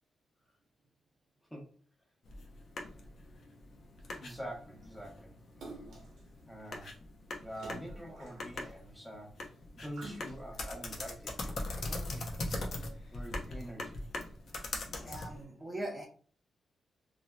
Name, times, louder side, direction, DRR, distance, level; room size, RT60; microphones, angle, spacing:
sound 1, 2.2-15.4, left 2 dB, 60° left, 0.6 m, -42 dB
voice 1, 4.2-5.3 6.5-6.9 7.4-12.3 13.1-14.1, equal, 5° left, -1 dB, 0.9 m, -46 dB
Splash splatter, 5.6-6.2 7.5-8.8 9.9-10.7 11.3-11.4, right 2 dB, 85° right, 0.8 m, -48 dB
voice 2, 14.9-16.1, right 1 dB, 25° right, -1 dB, 0.7 m, -41 dB
2.6 x 2.2 x 2.2 m, 0.42 s
cardioid pair, 85°, 0 cm